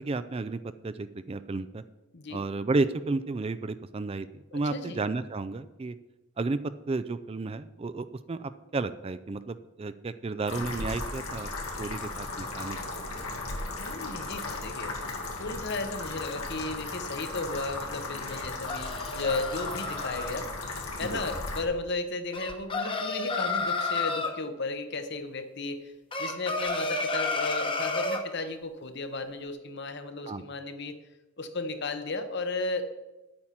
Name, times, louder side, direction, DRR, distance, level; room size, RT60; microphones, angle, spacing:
voice 1, 0.0-1.8 2.3-5.9 6.4-6.6 6.9-11.5 11.8-12.8 21.1-21.2 30.3-30.4, right 3 dB, 25° right, 13 dB, 0.3 m, -32 dB
voice 2, 2.1-2.5 4.5-5.0 13.8-15.0 15.4-20.5 21.0-25.9 26.2-31.0 31.4-32.9, left 3 dB, 55° left, 9 dB, 1.0 m, -34 dB
sound 1, 10.5-21.6, left 3 dB, 85° left, 2.3 m, -36 dB
sound 2, 18.3-20.3 22.3-24.3 26.1-28.2, left 3 dB, 25° left, 1.0 m, -31 dB
9.9 x 8.7 x 5.8 m, 1.1 s
head